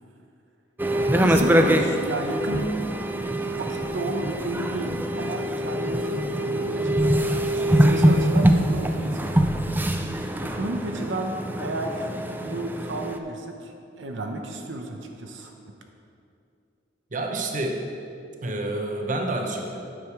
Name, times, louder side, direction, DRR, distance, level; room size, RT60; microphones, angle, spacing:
sound 1, 0.8-13.2, equal, 10° right, 0.4 m, -23 dB
voice 1, 1.2-2.7 3.1-9.3 10.4-15.5, right 2 dB, 85° right, 3 dB, 0.8 m, -32 dB
voice 2, 17.1-17.8 18.4-19.9, right 2 dB, 45° right, 2 dB, 0.8 m, -28 dB
9.6 x 6.6 x 4.7 m, 2.6 s
head